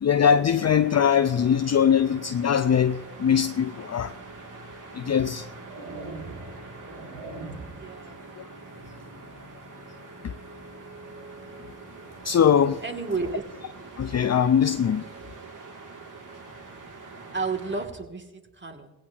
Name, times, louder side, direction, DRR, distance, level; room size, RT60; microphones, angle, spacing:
voice 1, 0.0-4.1 4.9-5.5 10.2-10.3 12.2-12.8 14.0-15.0, left 8 dB, 35° left, 0.7 m, -21 dB
sound 1, 0.5-17.9, right 3 dB, 45° right, 2.8 m, -44 dB
sound 2, 4.3-4.4 5.2-7.9, right 2 dB, 85° right, 2.7 m, -41 dB
voice 2, 7.7-8.2 12.8-13.4 17.3-18.9, right 4 dB, 25° right, 2.8 m, -32 dB
18.5 x 16.5 x 3.0 m
supercardioid pair, 55°, 44 cm